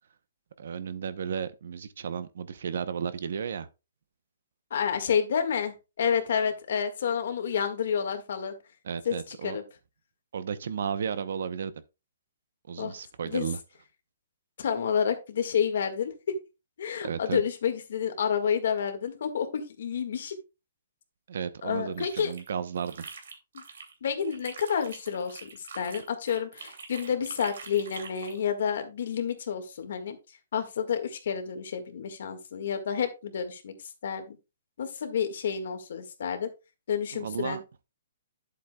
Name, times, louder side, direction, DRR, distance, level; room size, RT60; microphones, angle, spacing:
voice 1, 0.6-3.7 8.8-9.6 10.3-11.7 12.7-13.6 17.0-17.4 21.3-23.1 37.1-37.6, right 7 dB, 60° right, 0.8 m, -33 dB
voice 2, 4.7-8.5 9.1-9.6 12.8-13.0 13.2-13.5 14.6-16.1 16.8-20.4 21.6-22.3 24.0-30.2 30.5-33.7 34.0-34.4 34.8-36.5 36.9-37.6, left 7 dB, 60° left, 1.8 m, -29 dB
sound 1, 21.8-23.9 24.2-28.4, right 5 dB, 80° right, 2.6 m, -45 dB
11.0 x 7.9 x 2.3 m
hypercardioid pair, 170°, 0 cm